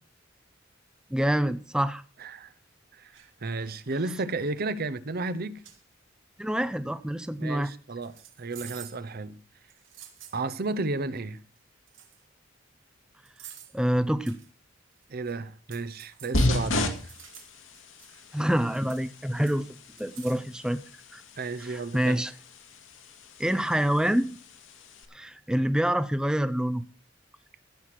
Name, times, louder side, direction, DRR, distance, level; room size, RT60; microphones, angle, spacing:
voice 1, 1.1-2.0 6.4-7.7 13.7-14.4 18.3-19.7 20.0-20.8 21.1-21.2 21.6-22.3 23.4-24.3 25.1-26.8, equal, 5° right, 0.5 m, -26 dB
voice 2, 2.2-2.5 2.9-5.6 7.4-9.4 10.3-11.4 15.1-17.1 21.4-22.2, right 3 dB, 50° right, 0.8 m, -33 dB
sound 1, 3.1-3.3 4.0-4.3 5.2-5.3 5.6-5.8 8.0-9.1 9.7-10.4 11.6-11.7 11.9-12.2 13.2-13.8 14.3-14.5 14.9-15.3 15.7-18.2 18.5-19.1 19.5-20.4, right 10 dB, 75° right, 1.9 m, -49 dB
sound 2, 16.3-25.0, left 1 dB, 75° left, 2.0 m, -34 dB
16.0 x 6.3 x 5.9 m
head